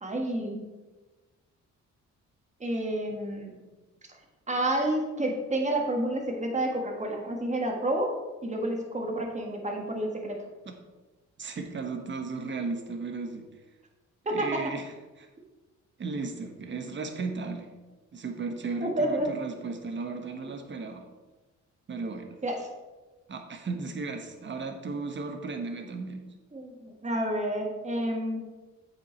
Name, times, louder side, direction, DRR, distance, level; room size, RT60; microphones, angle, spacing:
voice 1, 0.0-0.7 2.6-3.5 4.5-10.4 14.2-14.7 18.8-19.3 22.4-22.7 26.5-26.7 27.0-28.5, right 1 dB, 25° right, 1 dB, 1.5 m, -29 dB
voice 2, 11.4-13.5 14.3-15.3 16.0-17.7 18.1-21.0 21.9-22.4 23.3-26.3, right 4 dB, 40° right, 4 dB, 1.2 m, -35 dB
8.0 x 4.8 x 4.4 m, 1.2 s
cardioid pair, 90°, 30 cm